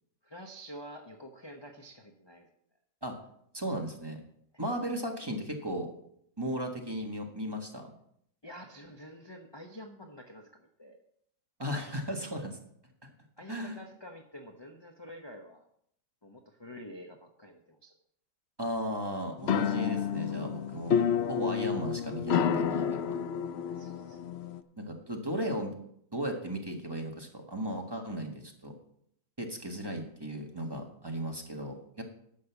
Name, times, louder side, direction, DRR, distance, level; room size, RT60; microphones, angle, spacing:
voice 1, 0.2-2.5 4.5-4.6 8.4-11.0 13.4-15.7 16.2-17.9 23.7-24.2, equal, 25° left, 3 dB, 0.7 m, -48 dB
voice 2, 3.5-4.2 4.6-5.9 6.4-7.9 11.6-12.6 13.0-13.1 13.5-13.8 18.6-23.1 24.8-25.8 26.1-28.7 29.4-32.0, equal, 15° right, 2 dB, 1.4 m, -36 dB
sound 1, 19.4-24.6, left 8 dB, 90° left, 0.5 m, -30 dB
10.5 x 6.6 x 7.0 m, 0.69 s
omnidirectional pair, 1.8 m